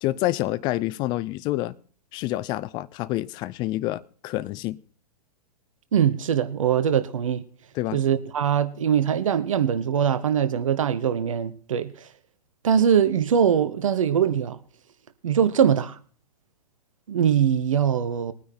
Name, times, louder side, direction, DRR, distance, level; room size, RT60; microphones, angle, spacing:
voice 1, 0.0-1.7 2.1-4.8 7.7-8.0, left 16 dB, 20° left, 0.5 m, -28 dB
voice 2, 5.9-7.4 7.9-12.1 12.6-14.6 15.2-16.0 17.1-18.3, right 8 dB, 55° right, 1.0 m, -22 dB
20.5 x 9.6 x 4.3 m
figure-of-eight pair, 110°, 20 cm